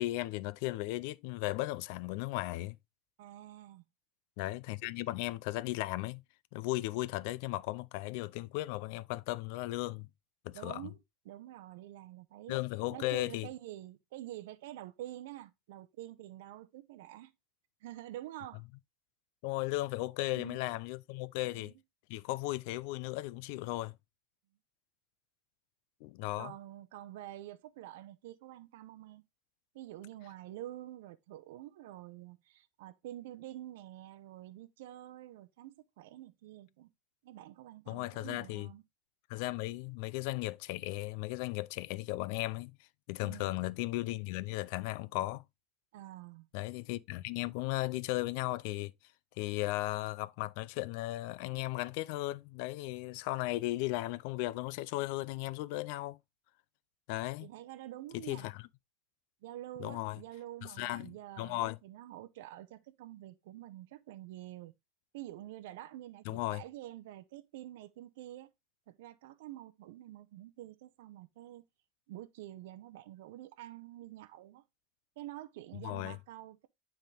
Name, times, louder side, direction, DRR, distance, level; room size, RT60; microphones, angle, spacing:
voice 1, 0.0-2.8 4.4-6.2 6.5-10.1 10.4-10.8 12.5-13.5 19.4-21.7 22.1-24.0 26.0-26.5 37.9-38.7 39.3-42.7 43.1-45.4 46.5-48.9 49.4-56.2 57.1-57.5 58.3-58.6 59.8-60.2 60.8-61.8 66.3-66.6 75.8-76.2, left 18 dB, 60° left, 0.4 m, -36 dB
voice 2, 3.2-3.8 10.5-11.0 11.2-12.6 12.9-17.3 17.8-18.6 20.3-20.6 21.4-21.7 26.4-29.2 29.7-36.9 37.2-38.8 43.2-43.5 45.9-46.5 57.4-58.5 59.4-64.7 65.1-68.5 68.9-71.6 72.1-74.6 75.2-76.7, right 14 dB, 80° right, 0.6 m, -47 dB
9.2 x 3.7 x 3.3 m
supercardioid pair, 160°, 0 cm